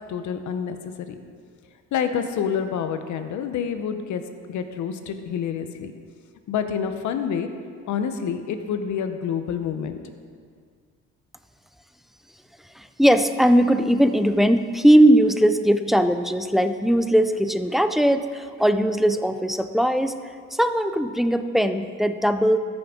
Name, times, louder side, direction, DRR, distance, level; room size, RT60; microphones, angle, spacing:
voice 1, 0.1-1.2 1.9-4.2 4.5-5.9 6.5-7.5 7.9-10.0, left 7 dB, 70° left, 8 dB, 0.8 m, -28 dB
voice 2, 12.8-20.1 20.5-22.6, equal, ahead, 10 dB, 0.4 m, -19 dB
13.5 x 6.1 x 3.7 m, 2.1 s
cardioid pair, 90°, 30 cm